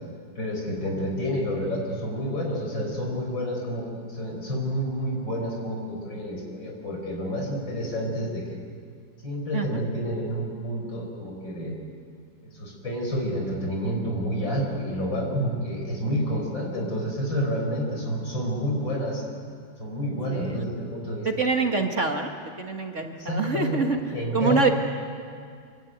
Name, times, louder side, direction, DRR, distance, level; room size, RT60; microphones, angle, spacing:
voice 1, 0.4-8.4 9.2-11.7 12.5-19.2 19.8-21.3 23.2-23.8 24.1-24.7, equal, 70° left, 1 dB, 6.3 m, -29 dB
voice 2, 20.3-20.6 21.2-22.3 22.6-24.0 24.3-24.7, right 4 dB, 40° right, 3 dB, 1.8 m, -25 dB
26.5 x 23.5 x 9.3 m, 2.2 s
omnidirectional pair, 2.1 m